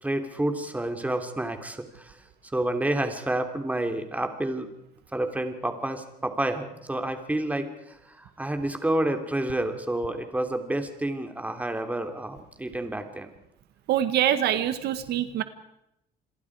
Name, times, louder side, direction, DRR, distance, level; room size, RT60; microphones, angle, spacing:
voice 1, 0.0-4.7 5.1-13.3, right 1 dB, 10° right, 6 dB, 3.0 m, -29 dB
voice 2, 13.9-15.4, right 11 dB, 75° right, 11 dB, 1.6 m, -24 dB
28.5 x 22.5 x 4.8 m, 0.81 s
cardioid pair, 110°, 17 cm